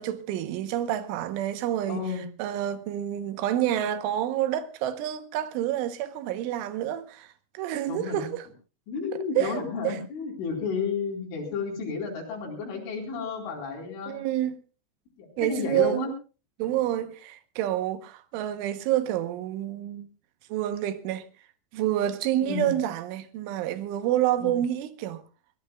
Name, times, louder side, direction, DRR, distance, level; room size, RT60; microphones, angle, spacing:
voice 1, 0.0-7.3 7.5-8.5 9.4-10.0 14.1-14.6 15.4-16.1 16.6-20.1 20.5-21.2 21.7-25.2, right 12 dB, 85° right, 3.5 m, -28 dB
voice 2, 1.9-2.3 7.9-8.3 8.9-14.2 15.2-16.1 22.4-22.8 24.4-24.6, left 5 dB, 85° left, 6.6 m, -32 dB
23.0 x 19.5 x 2.3 m
omnidirectional pair, 5.4 m